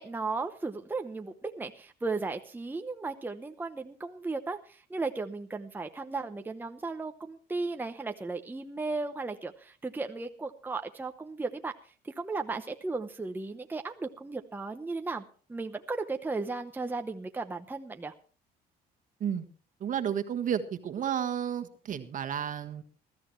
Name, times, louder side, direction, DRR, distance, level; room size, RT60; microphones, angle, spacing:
voice 1, 0.0-11.7 12.0-15.2 15.5-18.1, right 3 dB, 10° right, 6 dB, 0.9 m, -35 dB
voice 2, 19.8-22.8, right 9 dB, 50° right, 8 dB, 1.5 m, -32 dB
21.0 x 13.5 x 3.2 m, 0.40 s
cardioid pair, 110°, 17 cm